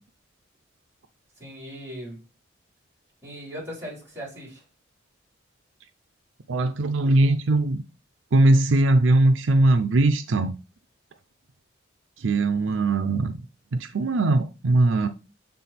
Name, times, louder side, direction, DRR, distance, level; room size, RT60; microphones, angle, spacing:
voice 1, 1.4-2.2 3.2-4.6 12.5-12.8, equal, 15° right, 3.8 m, -39 dB
voice 2, 6.5-7.8 8.3-10.5 12.2-13.3 13.9-15.1, right 2 dB, 75° right, 0.5 m, -20 dB
7.6 x 3.6 x 4.2 m
head